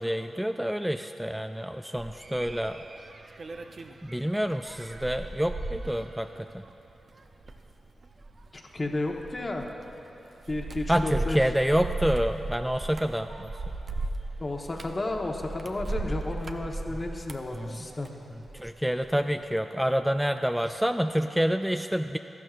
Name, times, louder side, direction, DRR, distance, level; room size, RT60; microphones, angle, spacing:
voice 1, 0.0-2.8 4.0-6.6 10.9-13.5 17.5-17.9 18.5-22.2, equal, 5° right, 7 dB, 0.3 m, -28 dB
sound 1, 2.0-18.7 19.0-19.5, right 2 dB, 50° right, 0.6 m, -37 dB
voice 2, 8.5-9.7 10.5-11.4 14.4-18.1 20.7-20.8, left 2 dB, 40° left, 2 dB, 1.2 m, -32 dB
14.0 x 12.0 x 2.5 m, 3.0 s
supercardioid pair, 40°, 0 cm